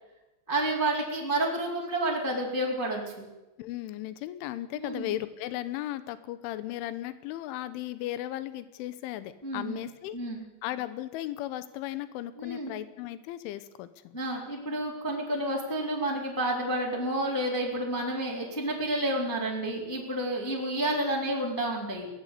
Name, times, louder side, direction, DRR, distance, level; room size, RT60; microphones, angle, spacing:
voice 1, 0.5-3.2 4.7-5.1 9.4-9.8 10.1-10.4 12.4-12.7 14.1-22.1, right 1 dB, 5° left, -2 dB, 3.2 m, -30 dB
voice 2, 3.6-10.2 10.6-14.2, left 14 dB, 85° left, 13 dB, 3.5 m, -36 dB
22.5 x 17.5 x 8.5 m, 1.0 s
omnidirectional pair, 5.5 m